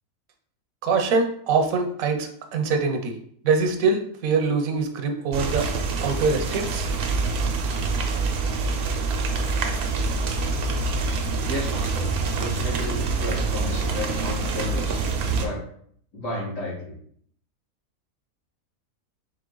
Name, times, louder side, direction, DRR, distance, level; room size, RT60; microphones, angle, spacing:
voice 1, 0.8-3.2 3.4-5.7 6.0-6.9, right 4 dB, 80° right, 4 dB, 1.1 m, -23 dB
sound 1, 5.3-15.5, right 3 dB, 60° right, 0.7 m, -26 dB
voice 2, 11.5-15.0 15.3-15.6 16.1-17.0, left 1 dB, 65° left, -6 dB, 2.0 m, -33 dB
3.9 x 3.0 x 3.8 m, 0.63 s
omnidirectional pair, 1.5 m